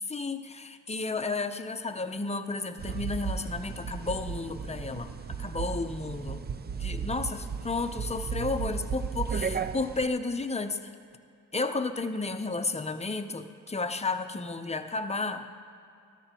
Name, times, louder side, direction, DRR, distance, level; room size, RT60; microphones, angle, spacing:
voice 1, 0.0-6.4 6.8-10.9 11.5-15.5, left 3 dB, 20° left, 8 dB, 0.7 m, -32 dB
sound 1, 2.8-10.1, right 6 dB, 30° right, 0.5 m, -35 dB
14.5 x 13.0 x 3.0 m, 2.5 s
cardioid pair, 75°, 33 cm